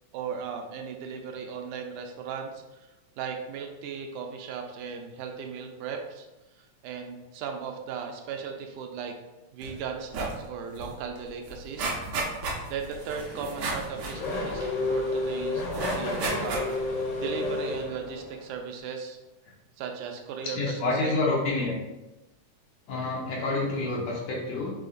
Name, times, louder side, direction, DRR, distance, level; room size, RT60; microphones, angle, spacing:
voice 1, 0.1-2.6 3.2-6.3 6.8-9.1 9.5-11.9 12.7-14.6 14.9-15.6 15.9-16.8 17.2-19.2 19.8-21.2, right 6 dB, 90° right, 3 dB, 2.1 m, -36 dB
sound 1, 9.6-9.8 10.1-10.4 10.8-10.9 11.2-15.1 15.7-16.9 17.4-17.5, right 3 dB, 70° right, 2.0 m, -33 dB
Race car auto racing / Accelerating revving vroom, 13.0-18.5, left 2 dB, 55° left, 1.3 m, -31 dB
voice 2, 20.6-21.8 22.9-24.7, left 2 dB, 75° left, -4 dB, 2.0 m, -28 dB
5.6 x 3.8 x 2.5 m, 1.0 s
omnidirectional pair, 3.5 m